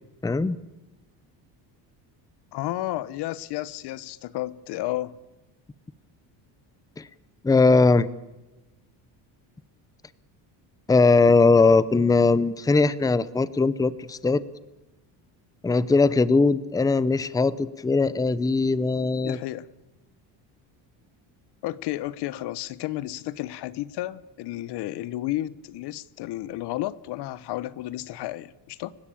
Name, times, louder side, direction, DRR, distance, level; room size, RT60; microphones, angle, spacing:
voice 1, 0.2-0.6 7.0-7.1 7.4-8.1 10.9-14.4 15.6-19.4, left 3 dB, 10° left, 0.7 m, -20 dB
voice 2, 2.5-5.2 19.2-19.7 21.6-28.9, left 15 dB, 70° left, 1.2 m, -32 dB
30.0 x 16.5 x 8.7 m
cardioid pair, 125°, 41 cm